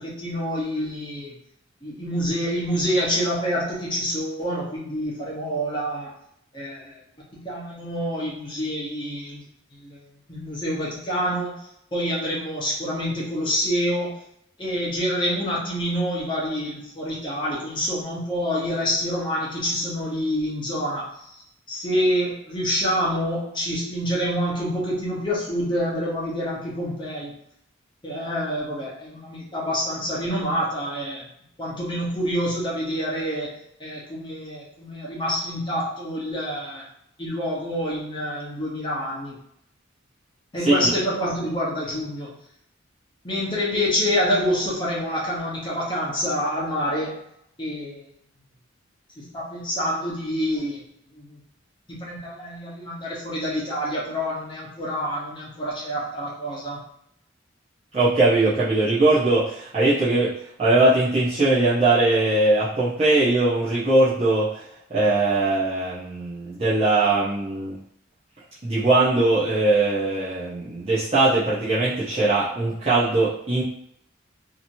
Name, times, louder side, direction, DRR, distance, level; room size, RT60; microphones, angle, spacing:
voice 1, 0.0-1.3 1.8-6.1 6.5-7.0 7.3-9.4 9.7-10.0 10.3-11.7 11.9-14.2 14.6-21.3 21.7-27.3 28.0-31.3 31.6-36.9 37.2-39.4 40.5-42.3 43.2-47.2 47.6-48.0 49.2-50.8 51.1-51.4 51.9-56.8, equal, 25° left, -6 dB, 0.9 m, -27 dB
voice 2, 57.9-60.3 60.6-64.6 64.9-67.8 68.6-73.6, right 2 dB, 30° right, -11 dB, 0.7 m, -20 dB
2.9 x 2.8 x 2.6 m, 0.73 s
head